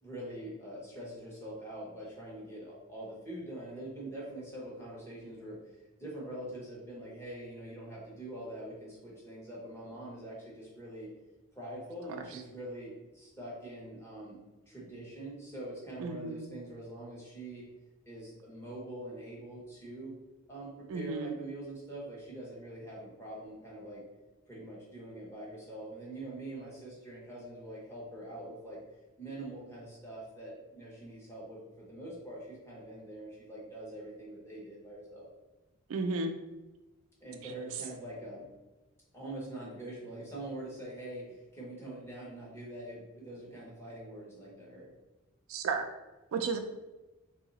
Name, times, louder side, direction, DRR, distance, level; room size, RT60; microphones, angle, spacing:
voice 1, 0.0-5.6 6.0-11.1 11.5-14.4 14.7-17.7 18.1-20.1 20.5-24.0 24.5-28.8 29.2-35.3 37.2-38.4 39.1-44.9, right 1 dB, 10° left, -6 dB, 1.2 m, -44 dB
voice 2, 16.0-16.5 20.9-21.4 35.9-36.3 37.4-37.5 45.5-45.9 46.3-46.6, right 4 dB, 70° right, 5 dB, 0.4 m, -33 dB
3.0 x 2.8 x 4.0 m, 1.1 s
head